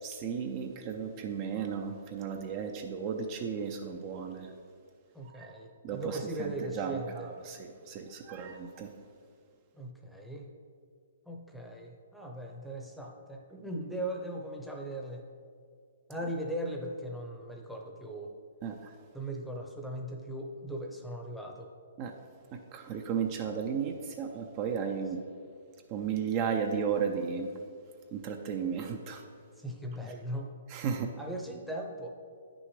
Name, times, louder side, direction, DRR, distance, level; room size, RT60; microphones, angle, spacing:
voice 1, 0.0-4.5 5.4-5.5 5.8-8.9 18.6-18.9 22.0-22.1 22.5-25.2 25.9-27.5 28.1-29.2 30.7-31.1, right 6 dB, 35° right, 4 dB, 0.6 m, -34 dB
voice 2, 5.1-7.3 9.7-10.4 11.3-15.2 16.1-18.3 19.1-21.7 29.6-30.5 30.8-30.9 31.2-32.1, right 1 dB, ahead, 1 dB, 0.8 m, -39 dB
9.0 x 6.1 x 3.2 m, 2.2 s
hypercardioid pair, 140°, 0 cm